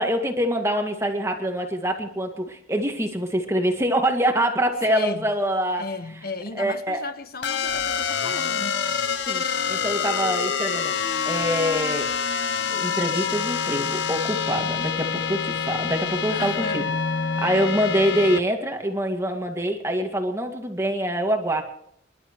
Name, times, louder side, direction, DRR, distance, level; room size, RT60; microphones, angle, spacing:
voice 1, 0.0-5.9 6.6-7.0 9.3-10.9 11.3-12.1 12.7-16.8 17.4-21.6, equal, 15° right, 2.0 m, -25 dB
voice 2, 4.8-5.3 5.8-8.8 16.3-16.9, left 3 dB, 50° left, 1.3 m, -34 dB
sound 1, 7.4-18.4, left 6 dB, 70° left, 0.8 m, -26 dB
28.0 x 12.0 x 3.1 m
head